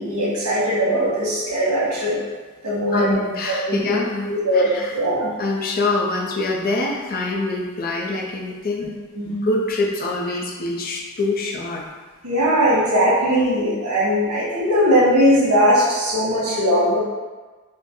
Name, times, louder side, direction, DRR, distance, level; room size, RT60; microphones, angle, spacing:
voice 1, 0.0-2.2 2.6-3.2 3.7-3.9 4.2-5.3 9.1-9.4 12.2-17.0, equal, 85° right, -7 dB, 1.4 m, -19 dB
voice 2, 2.9-4.9 5.4-8.9 9.2-11.8, left 2 dB, 40° left, -2 dB, 0.5 m, -25 dB
4.2 x 2.1 x 3.0 m, 1.3 s
head